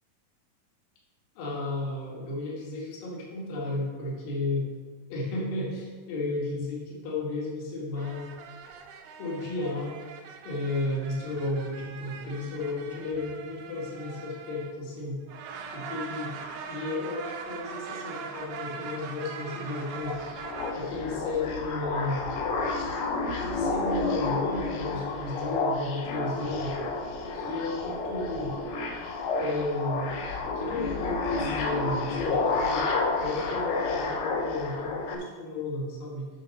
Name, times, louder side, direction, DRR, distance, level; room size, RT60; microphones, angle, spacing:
voice 1, 1.4-4.7 5.1-8.3 9.2-10.0 10.4-15.2 15.7-16.3 16.7-20.1 20.7-22.2 23.4-26.8 27.3-28.6 29.4-30.2 30.6-32.8 33.2-36.3, left 2 dB, 60° left, -4 dB, 3.2 m, -33 dB
sound 1, 8.0-14.9 15.3-20.7, right 6 dB, 80° right, 2.7 m, -41 dB
sound 2, 19.9-35.1, left 3 dB, 80° left, 1.9 m, -30 dB
9.4 x 4.1 x 6.4 m, 1.5 s
omnidirectional pair, 4.8 m